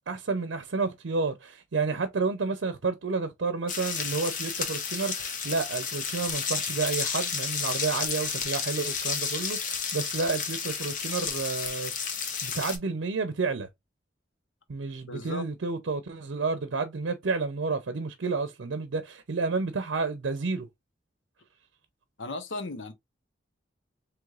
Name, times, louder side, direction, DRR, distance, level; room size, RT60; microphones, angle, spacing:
voice 1, 0.1-11.9 12.4-13.7 14.7-20.7, right 4 dB, 80° right, 0.6 m, -30 dB
sound 1, 3.7-12.8, left 6 dB, 40° left, 0.9 m, -32 dB
voice 2, 15.0-15.5 22.2-22.9, left 2 dB, 80° left, 0.9 m, -36 dB
4.7 x 3.1 x 2.4 m
head